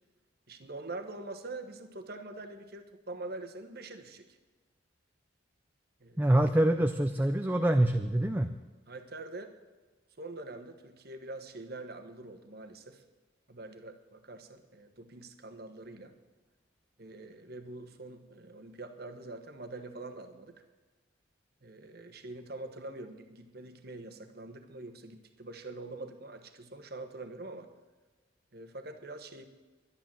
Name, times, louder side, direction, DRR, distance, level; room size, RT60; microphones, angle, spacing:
voice 1, 0.5-4.4 6.0-6.3 8.9-9.5 10.2-13.0 13.5-16.1 17.0-20.6 21.6-27.7 28.5-29.5, right 2 dB, 50° right, 7 dB, 1.2 m, -44 dB
voice 2, 6.2-8.5, right 1 dB, 10° right, 6 dB, 0.4 m, -25 dB
11.5 x 11.5 x 7.5 m, 1.3 s
head